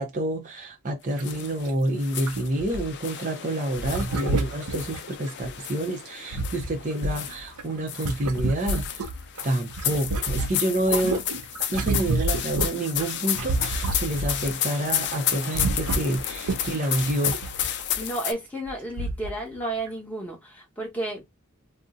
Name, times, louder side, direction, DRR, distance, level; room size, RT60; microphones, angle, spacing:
voice 1, 0.0-9.1 9.4-11.2 11.7-17.4, right 1 dB, 35° right, 0.6 m, -28 dB
sound 1, 1.2-1.7 2.0-7.5 7.9-18.3, left 10 dB, 50° left, 0.4 m, -32 dB
sound 2, 1.2-1.3 1.6-1.7 2.2-3.2 3.8-5.5 6.0-9.4 9.7-14.5 14.8-15.1 15.3-18.0 18.7-18.8 19.0-19.4 19.9-20.0, right 2 dB, 85° right, 0.5 m, -30 dB
voice 2, 18.0-21.2, right 2 dB, 5° left, 1.0 m, -32 dB
2.6 x 2.1 x 3.6 m
head